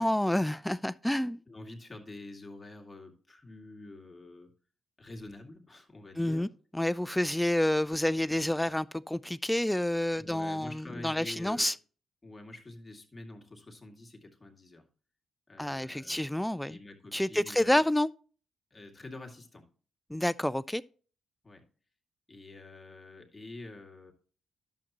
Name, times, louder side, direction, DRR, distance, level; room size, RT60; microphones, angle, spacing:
voice 1, 0.0-1.4 6.2-6.5 6.7-11.7 15.6-16.8 17.1-18.1 20.1-20.8, left 1 dB, 5° left, 0.3 m, -29 dB
voice 2, 1.5-4.5 5.0-6.5 10.1-11.7 12.2-14.8 15.5-16.3 16.7-17.8 18.7-19.7 21.4-21.7 22.3-24.1, left 2 dB, 25° left, 2.2 m, -47 dB
11.0 x 7.2 x 2.9 m
supercardioid pair, 55°, 0 cm